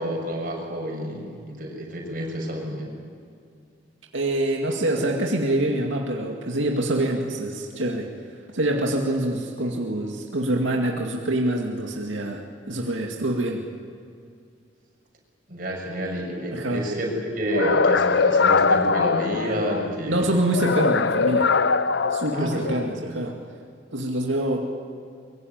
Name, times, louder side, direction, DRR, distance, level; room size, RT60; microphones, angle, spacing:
voice 1, 0.0-2.9 15.5-20.3 22.3-23.0, equal, 45° right, -1 dB, 6.5 m, -29 dB
voice 2, 4.1-8.1 8.5-13.6 16.5-16.8 20.1-21.5 22.1-23.4 23.9-24.7, right 1 dB, 90° right, 0 dB, 2.2 m, -25 dB
sound 1, 17.5-19.9 20.5-22.9, left 4 dB, 65° left, 0.6 m, -22 dB
23.0 x 23.0 x 9.4 m, 2.3 s
head